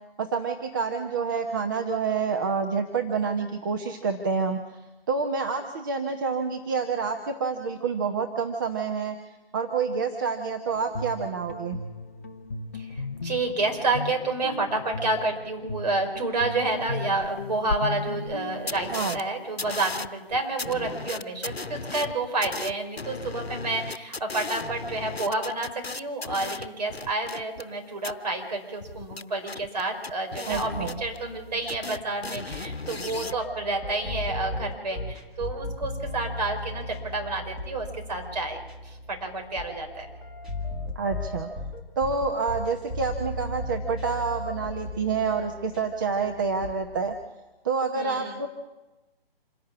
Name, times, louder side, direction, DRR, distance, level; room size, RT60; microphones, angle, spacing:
voice 1, 0.2-4.6 5.1-9.2 9.5-11.8 18.9-19.2 30.5-31.0 40.9-41.5 42.0-47.1 47.6-48.5, right 5 dB, 20° right, 4 dB, 0.9 m, -28 dB
Guitar, 10.7-18.7, left 3 dB, 15° left, 0.6 m, -37 dB
voice 2, 12.7-40.1 47.9-48.4, right 2 dB, 45° right, 4 dB, 5.2 m, -30 dB
sound 1, 17.2-17.3 17.7-17.8 18.3-18.4 18.7-19.2 19.6-27.7 28.0-28.1 28.8-31.4 31.7-33.4, left 3 dB, 90° left, 0.9 m, -35 dB
sound 2, 30.5-47.2, left 1 dB, ahead, 1.6 m, -37 dB
27.0 x 11.5 x 8.6 m, 1.1 s
figure-of-eight pair, 145°, 30 cm